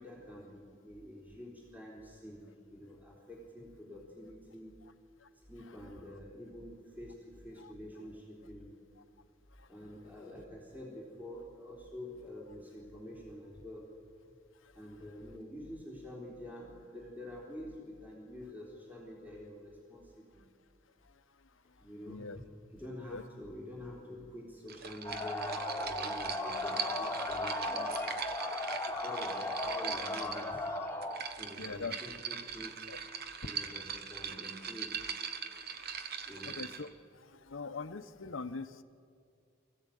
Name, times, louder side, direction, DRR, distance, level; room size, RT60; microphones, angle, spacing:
voice 1, 0.0-4.7 5.5-8.7 9.7-13.9 14.7-20.4 21.8-22.4 22.7-28.1 28.9-30.7 31.3-32.9 33.4-35.0 36.3-36.6, left 1 dB, 10° right, -3 dB, 3.8 m, -47 dB
voice 2, 22.1-22.4 23.1-23.2 31.6-32.0 32.9-33.0 35.8-36.9 37.3-38.8, left 4 dB, 70° left, 11 dB, 0.9 m, -42 dB
sound 1, 24.7-36.9, right 7 dB, 50° right, 1.2 m, -41 dB
sound 2, 25.0-31.2, left 2 dB, 10° left, 2.0 m, -36 dB
23.5 x 15.0 x 9.2 m, 2.3 s
head